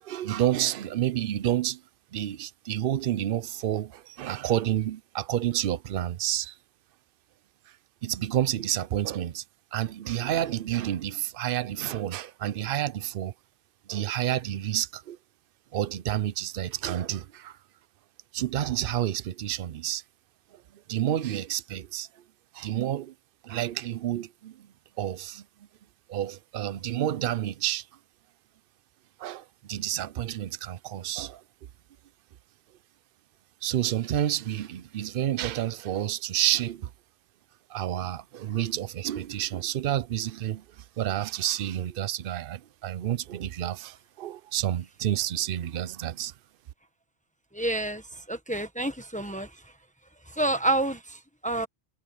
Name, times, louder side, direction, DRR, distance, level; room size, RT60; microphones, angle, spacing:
voice 1, 0.0-1.8 2.1-6.6 8.0-9.4 9.7-13.3 13.9-15.2 15.7-17.6 18.3-20.0 20.5-20.6 20.9-22.1 22.5-23.1 23.4-24.7 25.0-25.4 26.1-27.9 29.2-31.4 33.6-36.9 37.7-46.3, right 12 dB, 60° right, 0.8 m, -29 dB
voice 2, 47.5-48.0 48.3-49.5 50.3-51.7, right 2 dB, 5° left, 1.2 m, -28 dB
omnidirectional pair, 1.1 m